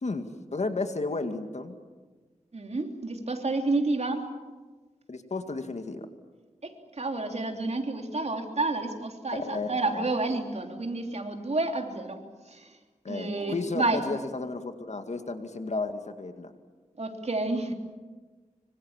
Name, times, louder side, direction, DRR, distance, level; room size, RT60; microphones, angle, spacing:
voice 1, 0.0-1.8 5.1-6.1 9.3-10.1 13.0-16.5, left 3 dB, 60° left, 7 dB, 2.3 m, -33 dB
voice 2, 2.5-4.2 6.6-6.7 7.0-12.2 12.5-12.7 13.1-14.0 17.0-17.7, right 2 dB, 55° right, 4 dB, 3.3 m, -30 dB
25.5 x 25.0 x 7.5 m, 1.3 s
wide cardioid pair, 65°, 13 cm